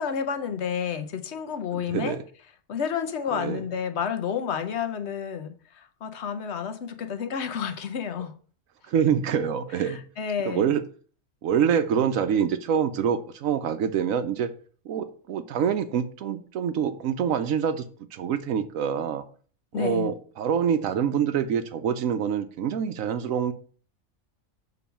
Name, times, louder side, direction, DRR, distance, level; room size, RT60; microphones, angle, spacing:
voice 1, 0.0-2.2 2.7-8.3 9.8-10.7 19.7-20.1, left 7 dB, 60° left, 1.0 m, -30 dB
voice 2, 1.7-2.2 3.3-3.6 8.9-10.0 10.5-10.9 11.4-14.5 14.8-19.2 19.7-23.5, right 8 dB, 85° right, 1.1 m, -26 dB
7.2 x 3.9 x 5.6 m
omnidirectional pair, 1.4 m